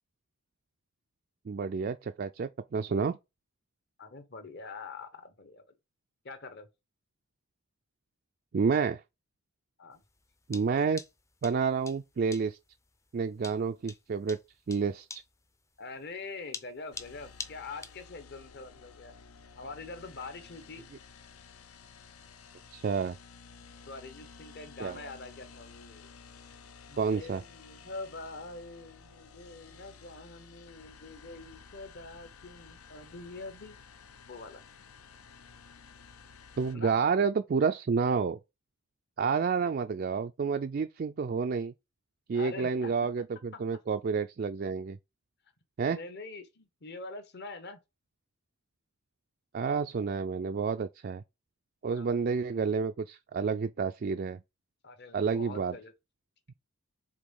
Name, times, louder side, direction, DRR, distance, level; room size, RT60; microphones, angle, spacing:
voice 1, 1.4-3.2 8.5-9.0 10.5-11.0 11.4-12.6 13.1-14.4 14.7-15.2 22.7-23.2 24.8-25.0 27.0-27.4 36.6-38.4 39.2-41.7 42.3-45.0 45.8-46.0 49.5-51.2 51.8-54.4 55.1-55.8, right 5 dB, 45° right, 0.3 m, -29 dB
voice 2, 4.0-5.7 6.2-6.7 9.8-10.0 15.8-19.1 19.6-20.9 23.9-26.1 26.9-33.8 34.3-34.6 36.7-37.0 39.5-39.7 42.3-42.9 45.9-47.8 51.9-52.5 54.8-55.9, left 3 dB, 50° left, 1.1 m, -45 dB
sound 1, 10.0-18.0, left 3 dB, 15° left, 0.5 m, -45 dB
sound 2, 16.9-36.8, left 5 dB, 80° left, 0.7 m, -53 dB
5.1 x 3.6 x 5.4 m
head